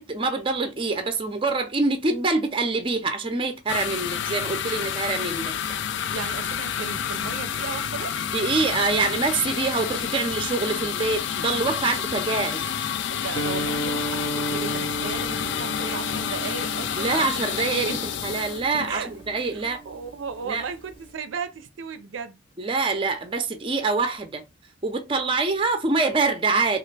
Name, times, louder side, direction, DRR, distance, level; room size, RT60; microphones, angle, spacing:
voice 1, 0.0-5.5 8.3-12.7 17.0-19.8 20.4-20.6 22.6-24.4 24.8-26.8, right 3 dB, 25° right, 0.5 m, -25 dB
sound 1, 3.7-19.4, left 8 dB, 65° left, 0.3 m, -29 dB
voice 2, 6.1-8.2 13.1-17.4 17.7-18.0 18.9-19.1 19.5-22.4, right 5 dB, 80° right, 0.5 m, -35 dB
Guitar, 13.3-21.1, right 1 dB, 30° left, 0.8 m, -35 dB
3.3 x 2.4 x 3.2 m
head